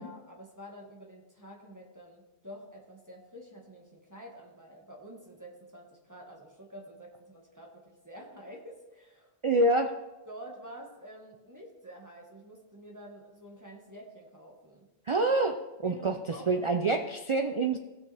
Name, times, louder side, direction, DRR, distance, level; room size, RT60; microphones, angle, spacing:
voice 1, 0.0-9.6 10.3-14.9 15.8-16.7, equal, 20° right, -2 dB, 1.5 m, -48 dB
voice 2, 9.4-9.9 15.1-17.8, right 2 dB, 40° right, 5 dB, 0.4 m, -26 dB
17.0 x 6.5 x 3.4 m, 1.1 s
omnidirectional pair, 1.0 m